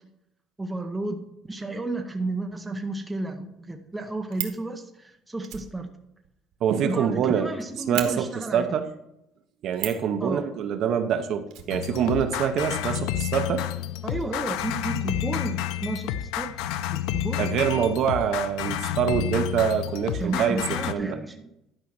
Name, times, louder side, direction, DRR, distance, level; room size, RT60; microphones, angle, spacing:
voice 1, 0.6-5.9 6.8-8.8 10.2-10.5 14.0-17.5 20.1-21.4, right 2 dB, 5° right, 4 dB, 0.7 m, -32 dB
Fire, 3.5-3.6 3.9-4.6 5.4-7.2 7.5-7.6 7.9-8.1 9.7-10.1 11.5-12.4 12.6-12.7 13.0-13.1, right 12 dB, 85° right, 1.4 m, -35 dB
voice 2, 6.6-7.5 7.9-8.9 9.6-13.7 17.4-21.2, right 8 dB, 45° right, 8 dB, 0.8 m, -25 dB
sound 1, 11.7-20.9, left 12 dB, 80° left, 0.5 m, -30 dB
11.5 x 5.3 x 6.0 m, 0.83 s
cardioid pair, 180°, 0 cm